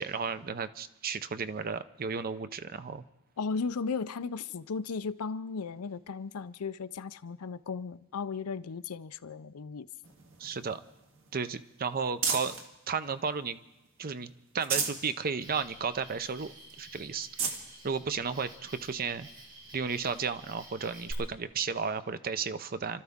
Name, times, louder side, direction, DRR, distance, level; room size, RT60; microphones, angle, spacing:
voice 1, 0.0-3.0 10.4-10.8 11.3-12.6 12.9-13.6 14.0-17.3 17.8-19.3 19.7-23.0, right 5 dB, 40° right, 0.6 m, -33 dB
voice 2, 3.4-9.9, left 5 dB, 80° left, 0.6 m, -36 dB
sound 1, 10.0-12.7 13.2-14.0 14.4-15.1 15.5-15.6 16.0-16.1 16.7-16.8 17.2-17.6 18.5-18.6 20.3-20.4, right 5 dB, 65° right, 1.8 m, -35 dB
Cricket, 15.4-21.1, right 1 dB, 90° right, 5.7 m, -50 dB
29.0 x 13.0 x 3.6 m
head